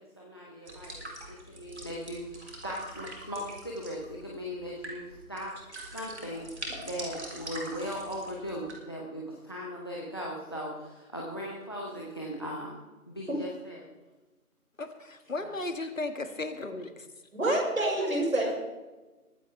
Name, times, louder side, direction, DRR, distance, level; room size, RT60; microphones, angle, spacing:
voice 1, 0.0-5.5 5.9-12.8 13.1-13.9 15.4-15.6 18.0-18.1 18.4-18.5, equal, 15° left, -1 dB, 1.0 m, -38 dB
sound 1, 0.7-8.7, right 1 dB, 50° right, 4.0 m, -43 dB
voice 2, 14.8-16.9, left 2 dB, 60° left, 7 dB, 1.9 m, -35 dB
voice 3, 17.3-18.5, right 1 dB, 65° right, -1 dB, 5.7 m, -27 dB
22.0 x 10.5 x 3.4 m, 1.2 s
figure-of-eight pair, 160°, 44 cm